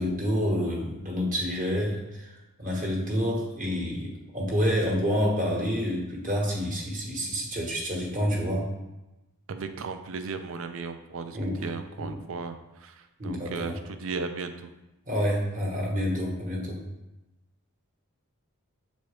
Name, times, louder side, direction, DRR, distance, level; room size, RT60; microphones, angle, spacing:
voice 1, 0.0-2.3 2.6-8.7 11.3-11.6 12.0-12.1 13.2-13.8 15.1-16.8, equal, 35° right, -2 dB, 1.3 m, -28 dB
voice 2, 9.5-14.7, right 4 dB, 60° right, 8 dB, 0.5 m, -36 dB
7.1 x 4.1 x 3.2 m, 1.0 s
head